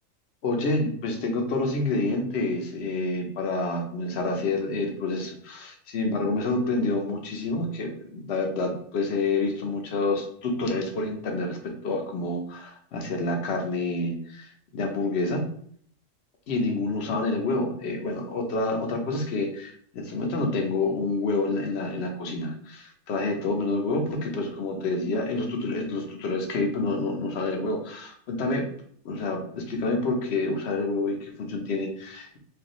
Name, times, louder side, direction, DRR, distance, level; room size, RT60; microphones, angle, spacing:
voice 1, 0.4-15.4 16.5-28.7 29.0-32.4, left 2 dB, 60° left, 3 dB, 1.0 m, -28 dB
4.7 x 2.5 x 3.0 m, 0.62 s
omnidirectional pair, 1.3 m